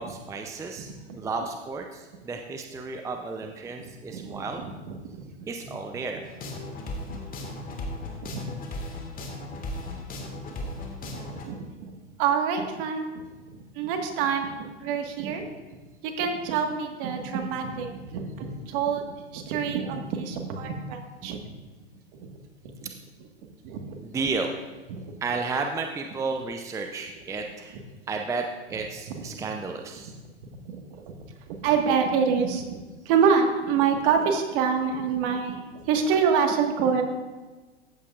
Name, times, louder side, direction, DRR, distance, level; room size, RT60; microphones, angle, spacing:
voice 1, 0.0-4.6 5.5-6.2 24.0-24.6 25.2-27.8 28.1-30.1, right 4 dB, 10° right, 4 dB, 0.5 m, -32 dB
voice 2, 4.1-4.7 5.1-5.2 7.1-7.2 7.6-7.7 8.2-8.4 10.6-10.7 11.0-11.9 12.2-13.1 13.5-15.4 16.0-19.0 19.3-21.4 22.2-22.3 22.6-22.9 23.6-23.8 24.9-25.1 29.2-29.3 30.7-30.8 31.5-32.6 33.1-37.0, right 6 dB, 50° right, 4 dB, 1.6 m, -26 dB
sound 1, 6.2-11.5, left 2 dB, 25° left, 1.8 m, -36 dB
14.0 x 8.3 x 2.4 m, 1.3 s
hypercardioid pair, 110°, 33 cm